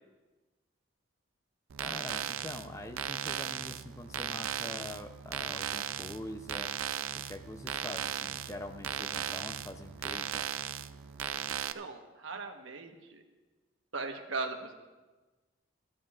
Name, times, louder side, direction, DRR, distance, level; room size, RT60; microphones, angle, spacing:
sound 1, 1.7-11.7, right 10 dB, 90° right, 0.5 m, -37 dB
voice 1, 1.8-6.7 7.3-10.5, left 1 dB, 15° left, 6 dB, 0.5 m, -44 dB
voice 2, 11.5-13.2 13.9-14.7, right 3 dB, 75° right, 5 dB, 1.2 m, -39 dB
22.0 x 13.0 x 2.4 m, 1.2 s
head